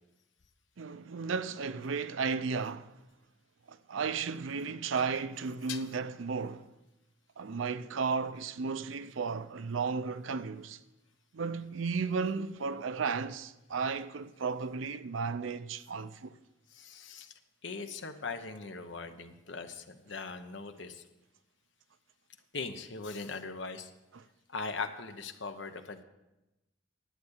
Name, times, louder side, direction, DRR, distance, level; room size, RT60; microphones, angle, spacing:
voice 1, 0.8-2.9 3.7-6.7 7.4-10.8 11.3-16.4 24.1-24.2, right 5 dB, 90° right, 0.5 m, -34 dB
voice 2, 16.7-17.3 17.6-21.0 22.5-23.9 24.5-26.0, left 4 dB, 75° left, 0.9 m, -40 dB
11.0 x 8.3 x 6.4 m
head